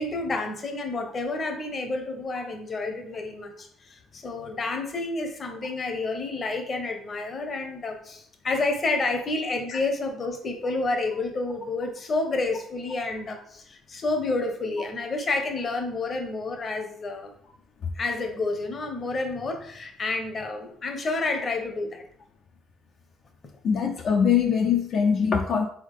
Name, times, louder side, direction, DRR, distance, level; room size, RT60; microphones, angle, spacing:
voice 1, 0.0-17.3 18.0-22.0, left 3 dB, 40° left, 5 dB, 0.8 m, -29 dB
voice 2, 23.6-25.7, left 7 dB, 60° left, 2 dB, 0.5 m, -22 dB
3.6 x 3.5 x 3.6 m, 0.63 s
cardioid pair, 100°, 0 cm